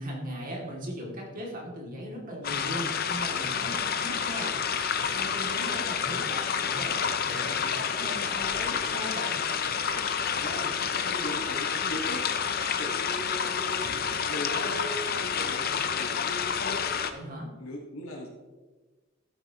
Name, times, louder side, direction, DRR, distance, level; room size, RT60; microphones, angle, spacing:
voice 1, 0.0-9.4 17.1-17.5, equal, 40° right, -2 dB, 2.4 m, -39 dB
sound 1, 2.4-17.1, left 7 dB, 45° left, 0.6 m, -29 dB
voice 2, 10.3-10.8 11.1-12.2 12.6-14.8 15.1-16.8 17.6-18.3, left 1 dB, 90° left, -2 dB, 1.5 m, -39 dB
13.0 x 8.9 x 2.9 m, 1.3 s
head